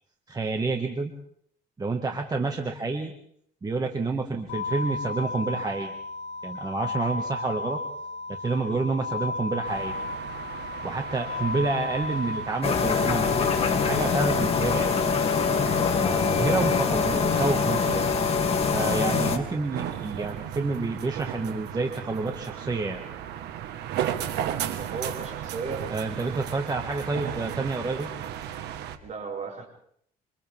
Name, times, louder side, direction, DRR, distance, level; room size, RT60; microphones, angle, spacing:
voice 1, 0.3-1.1 1.8-3.1 3.6-6.0 6.4-7.8 8.3-10.0 10.8-13.5 13.8-14.9 16.0-18.1 18.7-23.0 25.9-28.1, right 3 dB, 25° right, 3 dB, 2.0 m, -29 dB
sound 1, 4.5-13.5, left 3 dB, 80° left, 3.1 m, -34 dB
sound 2, 9.6-29.0, right 10 dB, 80° right, 1.7 m, -36 dB
sound 3, 12.6-19.4, left 5 dB, 35° left, 2.7 m, -24 dB
voice 2, 24.5-25.9 26.5-26.6 29.0-29.7, right 4 dB, 45° right, 1 dB, 6.3 m, -35 dB
27.5 x 27.0 x 3.7 m, 0.67 s
cardioid pair, 110°, 17 cm